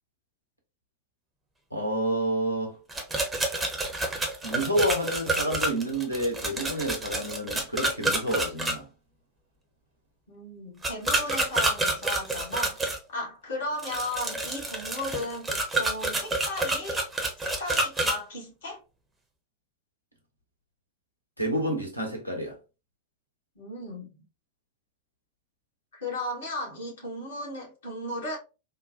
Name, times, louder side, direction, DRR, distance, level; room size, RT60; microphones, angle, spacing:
voice 1, 1.7-2.8 4.4-8.9 21.4-22.6, right 1 dB, 90° right, 0.9 m, -29 dB
sound 1, 2.9-8.7 10.8-13.0 13.8-18.2, right 2 dB, 10° right, 0.7 m, -28 dB
voice 2, 10.3-17.0 17.6-18.8 23.5-24.1 25.9-28.4, left 1 dB, 60° left, 1.4 m, -35 dB
3.7 x 2.2 x 2.6 m
figure-of-eight pair, 90°, 0 cm